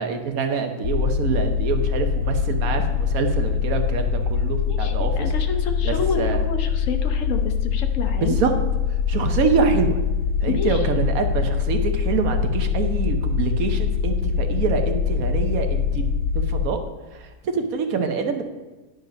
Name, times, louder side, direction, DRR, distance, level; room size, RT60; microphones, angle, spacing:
voice 1, 0.0-5.3 5.8-6.4 8.2-8.5 8.9-10.0 10.4-16.8 17.1-18.4, right 5 dB, 70° right, 6 dB, 1.3 m, -25 dB
sound 1, 0.8-16.7, left 7 dB, 90° left, 1.2 m, -23 dB
voice 2, 4.7-8.4 10.5-10.8, left 5 dB, 65° left, 7 dB, 1.1 m, -29 dB
10.5 x 5.2 x 5.1 m, 1.2 s
omnidirectional pair, 1.6 m